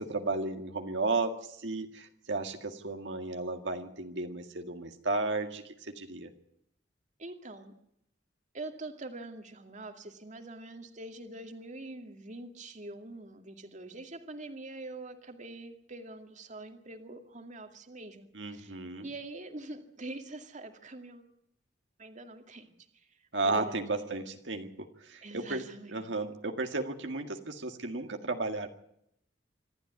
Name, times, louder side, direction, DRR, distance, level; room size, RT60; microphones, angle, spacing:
voice 1, 0.0-6.3 18.3-19.1 23.3-28.7, right 3 dB, 75° right, 5 dB, 2.0 m, -34 dB
voice 2, 7.2-7.7 8.5-21.3 22.0-23.2 23.4-24.0 25.2-26.0, right 2 dB, 40° right, 6 dB, 2.2 m, -44 dB
26.0 x 13.0 x 9.5 m, 0.74 s
head